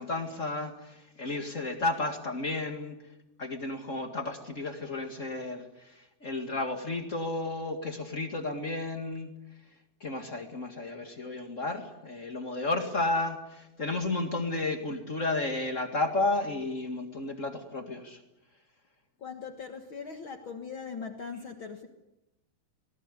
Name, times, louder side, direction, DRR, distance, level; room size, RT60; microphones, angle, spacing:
voice 1, 0.0-2.9 3.4-9.3 10.0-18.2, left 2 dB, 45° left, 5 dB, 0.9 m, -32 dB
voice 2, 19.2-21.9, left 5 dB, 80° left, 5 dB, 1.1 m, -40 dB
26.5 x 19.0 x 9.8 m, 0.94 s
omnidirectional pair, 4.9 m